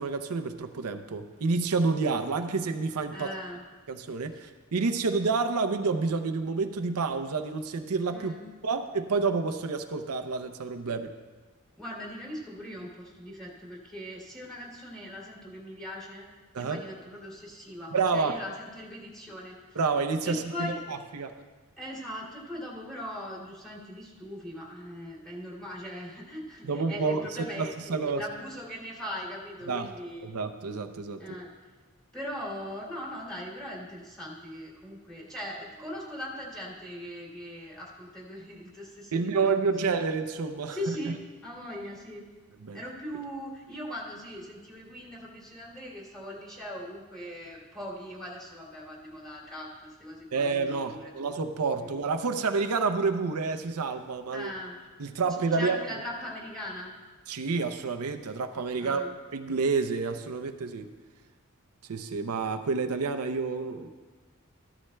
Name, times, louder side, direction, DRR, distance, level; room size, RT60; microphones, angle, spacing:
voice 1, 0.0-3.3 3.9-8.3 8.6-11.1 16.5-16.8 17.9-18.4 19.8-21.3 26.6-28.2 29.7-29.9 30.2-31.2 39.1-40.8 42.6-42.8 50.3-54.5 55.0-55.8 57.3-59.0 59.3-60.9 61.9-63.9, right 4 dB, 90° right, 7 dB, 0.6 m, -29 dB
voice 2, 3.1-3.6 8.1-8.5 11.8-16.3 16.5-19.8 20.2-20.8 21.8-30.4 31.2-31.5 32.1-40.0 40.7-42.3 42.7-51.1 51.8-51.9 54.3-54.8 55.5-56.9 58.8-59.1, equal, 5° left, -4 dB, 2.7 m, -40 dB
14.5 x 13.0 x 2.2 m, 1.3 s
head